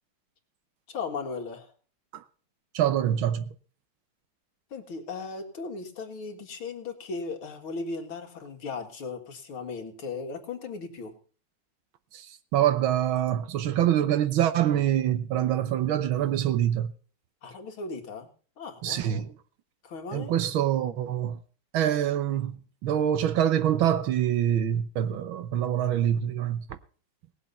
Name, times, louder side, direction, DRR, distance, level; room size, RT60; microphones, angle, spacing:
voice 1, 0.9-1.7 4.7-11.1 17.4-18.3 18.6-19.2 19.8-20.3, left 4 dB, 80° left, 2.8 m, -37 dB
voice 2, 2.7-3.5 12.1-12.3 12.5-16.9 18.8-19.3 20.1-21.4 21.7-26.7, right 10 dB, 75° right, 1.7 m, -25 dB
18.5 x 7.6 x 5.4 m
omnidirectional pair, 2.3 m